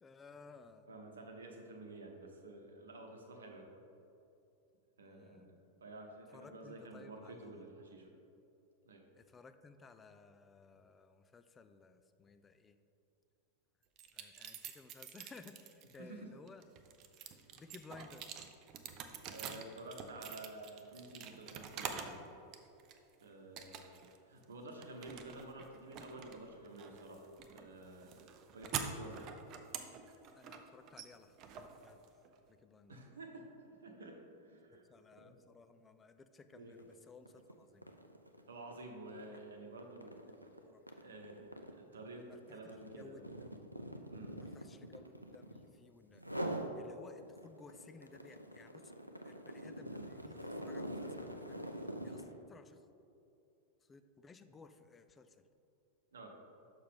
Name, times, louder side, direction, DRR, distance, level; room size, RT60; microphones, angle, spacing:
voice 1, 0.0-0.9 5.0-5.5 6.3-7.5 9.1-12.8 14.1-16.7 17.6-18.4 30.3-32.0 32.5-33.0 34.7-37.9 40.3-40.8 42.2-42.6 43.0-43.6 44.4-46.2 46.7-48.9 49.2-52.8 53.9-55.4, left 4 dB, 20° left, 9 dB, 0.3 m, -58 dB
voice 2, 0.9-3.7 5.0-5.5 5.8-8.1 8.9-9.0 16.0-16.3 19.3-22.2 23.2-28.1 28.5-29.3 32.9-33.4 33.8-35.4 36.5-36.7 38.5-40.2 41.0-43.4 44.1-44.4 56.1-56.3, right 2 dB, 70° right, 2 dB, 0.9 m, -51 dB
sound 1, 14.0-16.0 16.5-22.2 22.5-23.1 23.6-24.2 24.4-32.4, right 7 dB, 35° right, 0.5 m, -46 dB
sound 2, 36.7-36.9 37.3-45.7 46.2-46.7 47.2-52.3, right 1 dB, 90° right, 0.4 m, -45 dB
6.5 x 5.7 x 3.7 m, 2.8 s
figure-of-eight pair, 90°, 0 cm